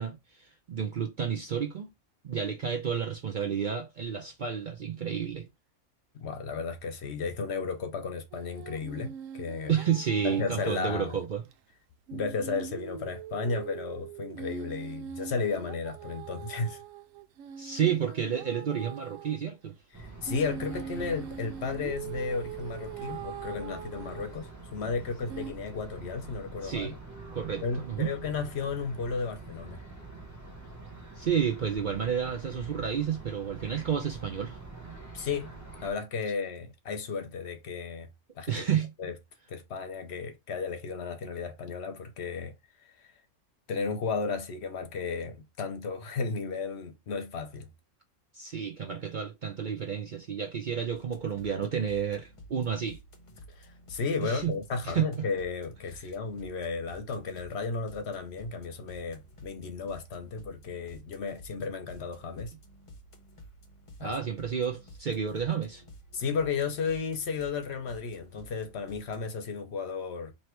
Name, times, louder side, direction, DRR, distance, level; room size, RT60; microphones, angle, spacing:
voice 1, 0.0-1.9 2.2-5.5 9.7-11.4 17.6-19.8 26.6-26.9 27.3-28.1 31.2-34.6 38.5-38.9 48.3-53.0 54.2-54.5 54.8-55.1 64.0-65.8, right 8 dB, 50° right, 0.6 m, -31 dB
voice 2, 6.1-9.8 10.2-11.1 12.1-16.8 19.9-27.0 27.6-29.8 35.1-35.5 35.8-38.1 38.3-38.6 39.0-39.1 39.5-42.5 42.8-43.1 43.7-47.7 53.5-62.5 64.0-64.2 66.1-70.3, left 5 dB, 60° left, 0.9 m, -34 dB
sound 1, 8.3-11.2 11.5-11.6 12.1-19.4 20.3-24.5 25.3-25.5, right 9 dB, 80° right, 0.9 m, -42 dB
sound 2, 19.9-35.9, right 3 dB, 15° right, 0.9 m, -46 dB
sound 3, 50.9-69.3, equal, 30° left, 0.7 m, -52 dB
3.2 x 2.8 x 4.3 m
omnidirectional pair, 1.4 m